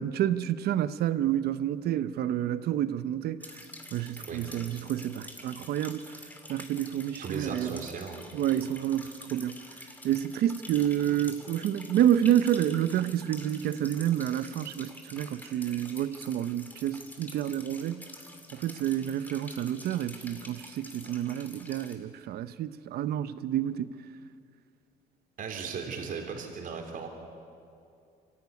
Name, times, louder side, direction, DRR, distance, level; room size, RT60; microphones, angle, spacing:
voice 1, 0.0-3.4 3.9-6.0 6.5-7.8 8.3-9.6 10.0-18.1 18.5-23.9, right 11 dB, 70° right, 0.8 m, -29 dB
sound 1, 3.4-21.9, left 1 dB, 10° left, 2.5 m, -48 dB
voice 2, 7.2-8.2 25.4-27.1, right 5 dB, 55° right, 3.6 m, -37 dB
25.0 x 14.0 x 9.7 m
cardioid pair, 110°, 17 cm